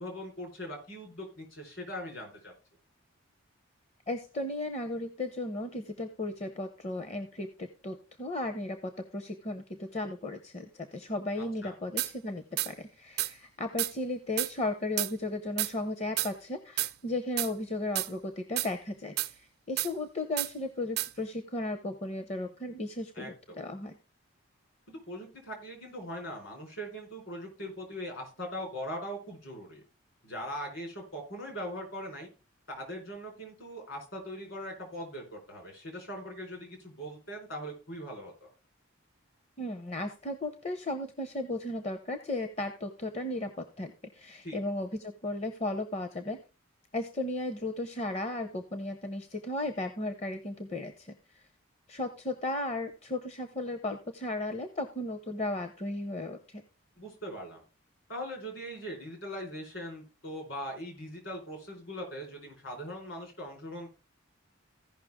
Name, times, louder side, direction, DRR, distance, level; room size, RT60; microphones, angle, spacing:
voice 1, 0.0-2.5 11.6-11.7 23.1-23.6 24.9-29.8 30.2-32.3 32.7-38.5 44.4-44.6 57.0-57.6 58.1-63.9, equal, 65° left, 2 dB, 4.4 m, -41 dB
voice 2, 4.1-23.9 39.6-46.4 46.9-51.4 51.9-56.6, left 2 dB, 30° left, 8 dB, 0.7 m, -35 dB
sound 1, 12.0-12.1 12.6-12.7 13.2-13.3 13.8-13.9 14.4-14.5 15.0-15.1 15.6-15.7 16.2-16.3 16.8-16.9 17.4-17.5 18.0-18.1 18.6-18.7 19.2-19.3 19.8-19.9 20.4-20.5 21.0-21.1, right 16 dB, 50° right, 0.4 m, -30 dB
15.5 x 5.7 x 3.6 m, 0.32 s
head